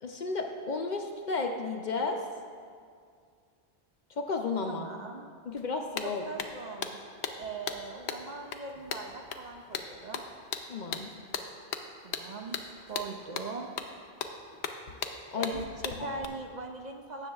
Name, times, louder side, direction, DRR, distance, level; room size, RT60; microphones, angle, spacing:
voice 1, 0.0-2.2 4.2-4.9 5.5-6.2 10.7-11.1 15.3-15.6 16.1-16.2, left 4 dB, 55° left, 3 dB, 0.6 m, -33 dB
voice 2, 4.7-5.3 6.0-7.0 7.4-10.3 12.0-12.6 12.9-13.7 15.4-17.3, right 3 dB, 55° right, 2 dB, 0.5 m, -40 dB
sound 1, 5.6-5.7 6.0-16.2, left 6 dB, 85° left, 0.9 m, -38 dB
17.0 x 6.9 x 2.3 m, 2.1 s
omnidirectional pair, 1.1 m